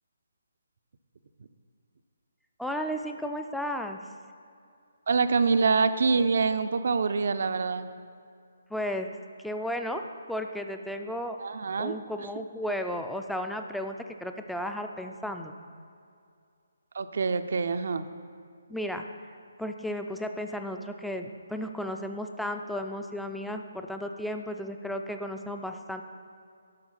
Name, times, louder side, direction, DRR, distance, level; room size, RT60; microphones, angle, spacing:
voice 1, 2.6-4.0 8.7-9.1 9.4-11.4 11.8-14.0 14.2-15.5 18.7-19.0 19.6-26.0, equal, ahead, 5 dB, 0.4 m, -34 dB
voice 2, 5.1-7.9 11.4-11.9 16.9-18.1, right 4 dB, 55° right, 11 dB, 0.5 m, -25 dB
10.5 x 6.2 x 5.5 m, 2.4 s
figure-of-eight pair, 140°, 0 cm